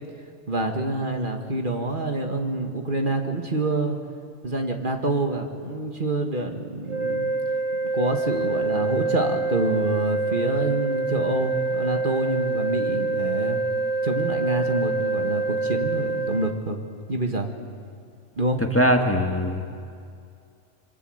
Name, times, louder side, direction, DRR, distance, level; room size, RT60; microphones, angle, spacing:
voice 1, 0.5-4.0 4.4-7.3 7.9-13.6 14.0-16.8 17.1-17.5 18.4-18.6, right 2 dB, 45° right, 4 dB, 2.1 m, -27 dB
sound 1, 6.9-16.6, right 3 dB, 25° right, 1.3 m, -26 dB
voice 2, 18.7-19.6, equal, 10° left, 4 dB, 1.7 m, -20 dB
28.0 x 24.0 x 8.0 m, 2.3 s
omnidirectional pair, 1.2 m